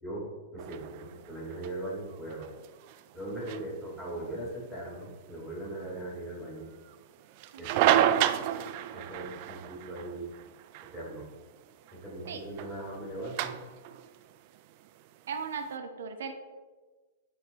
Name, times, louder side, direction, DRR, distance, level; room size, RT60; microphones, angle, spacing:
voice 1, 0.0-2.6 3.1-6.7 7.6-8.0 8.9-10.3 10.9-11.2 11.9-13.5, right 1 dB, 10° left, -5 dB, 1.9 m, -39 dB
sound 1, 0.6-15.7, right 11 dB, 40° right, 0.3 m, -33 dB
voice 2, 15.3-16.3, right 6 dB, 75° right, 5 dB, 0.8 m, -37 dB
9.4 x 3.2 x 4.0 m, 1.3 s
hypercardioid pair, 155°, 0 cm